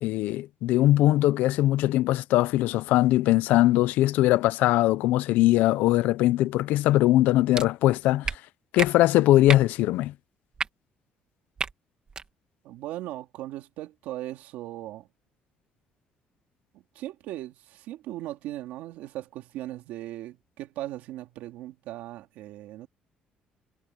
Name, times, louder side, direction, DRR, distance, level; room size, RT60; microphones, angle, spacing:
voice 1, 0.0-8.3 8.7-10.1, left 15 dB, 85° left, 0.7 m, -21 dB
sound 1, 7.5-7.7 8.2-8.4 8.8-8.9 9.5-9.7 10.5-10.7 11.6-11.7 12.1-12.2, right 5 dB, 30° right, 2.0 m, -29 dB
voice 2, 12.6-15.1 16.9-22.9, right 14 dB, 90° right, 2.7 m, -38 dB
cardioid pair, 135°, 3 cm